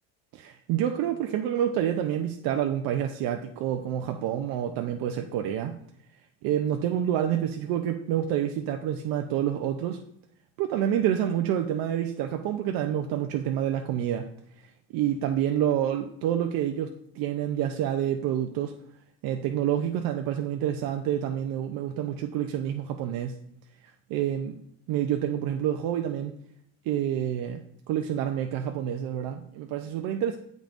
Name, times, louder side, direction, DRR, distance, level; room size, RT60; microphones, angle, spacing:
voice 1, 0.3-5.8 6.4-10.0 10.6-14.3 14.6-14.7 14.9-18.7 19.2-23.4 24.1-24.6 24.9-26.3 26.9-30.4, right 10 dB, 80° right, 4 dB, 0.5 m, -28 dB
7.5 x 5.4 x 2.5 m, 0.70 s
cardioid pair, 115°, 35 cm